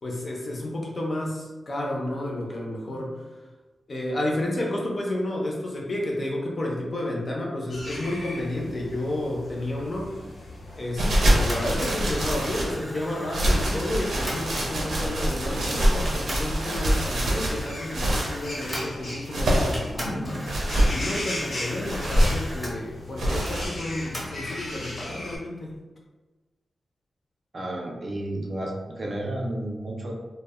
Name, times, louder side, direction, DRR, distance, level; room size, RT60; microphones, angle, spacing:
voice 1, 0.0-3.2 3.9-10.2 10.7-20.5 20.9-25.7, left 1 dB, 40° left, -2 dB, 0.5 m, -31 dB
sound 1, 7.7-25.4, left 1 dB, 80° left, 0.9 m, -38 dB
sound 2, 11.0-12.8 13.3-18.4 19.1-19.9 20.4-21.0 21.8-22.5 23.2-23.7, right 1 dB, 85° right, 0.6 m, -24 dB
sound 3, 11.3-14.8 15.6-15.7 16.1-19.3 19.7-22.8 24.1-24.6, equal, 5° right, 0.7 m, -38 dB
voice 2, 27.5-30.1, right 1 dB, 35° right, -1 dB, 0.4 m, -32 dB
2.0 x 2.0 x 3.5 m, 1.2 s
wide cardioid pair, 150°, 0 cm